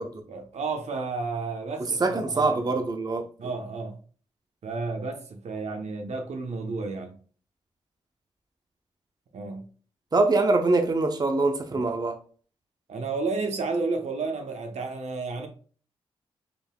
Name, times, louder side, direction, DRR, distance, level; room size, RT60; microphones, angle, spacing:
voice 1, 0.3-2.6 3.4-4.0 4.6-7.2 9.3-9.7 11.7-11.8 12.9-15.5, right 3 dB, 65° right, 0.9 m, -32 dB
voice 2, 2.0-3.2 10.1-12.1, right 3 dB, 35° right, 0.7 m, -24 dB
5.0 x 3.3 x 2.2 m
supercardioid pair, 45°, 12 cm